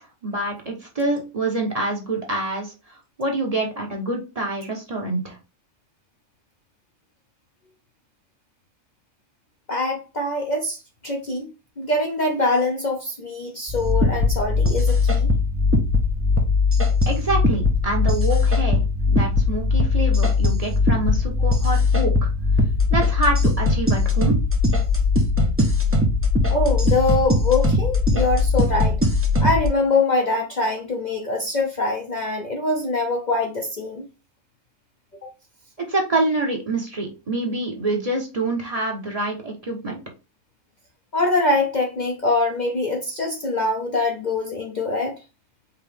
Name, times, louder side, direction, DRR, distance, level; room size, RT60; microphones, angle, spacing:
voice 1, 0.0-2.7 3.2-5.4 17.1-22.3 22.9-24.4 35.9-40.0, right 2 dB, 30° right, 1.0 m, -26 dB
voice 2, 9.7-10.8 11.0-11.5 11.8-15.3 26.5-29.0 29.4-34.1 35.2-35.3 41.1-45.2, left 2 dB, 45° left, 0.7 m, -23 dB
sound 1, 13.7-29.7, left 3 dB, 15° right, 0.6 m, -20 dB
4.8 x 3.0 x 3.4 m
omnidirectional pair, 1.3 m